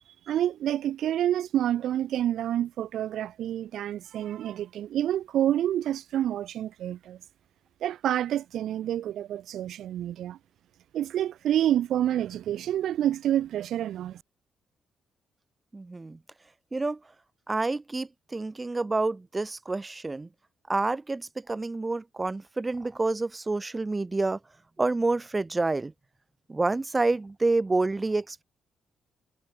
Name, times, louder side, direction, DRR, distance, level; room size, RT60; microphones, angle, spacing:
voice 1, 0.3-7.2 7.8-10.4 10.9-14.2, right 11 dB, 75° right, 0.7 m, -28 dB
voice 2, 15.7-16.2 16.7-17.0 17.5-20.3 20.7-24.4 24.8-25.9 26.5-28.4, right 3 dB, 15° right, 0.5 m, -28 dB
cardioid pair, 140°, 0 cm